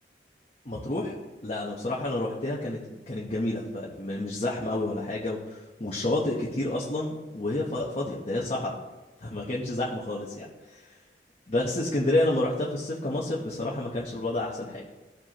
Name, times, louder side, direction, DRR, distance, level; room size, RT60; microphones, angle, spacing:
voice 1, 0.6-1.1 1.4-2.8 3.1-8.8 9.2-10.5 10.7-10.8 11.5-14.8, left 1 dB, 35° left, -4 dB, 1.0 m, -29 dB
14.5 x 4.9 x 3.0 m, 1.2 s
head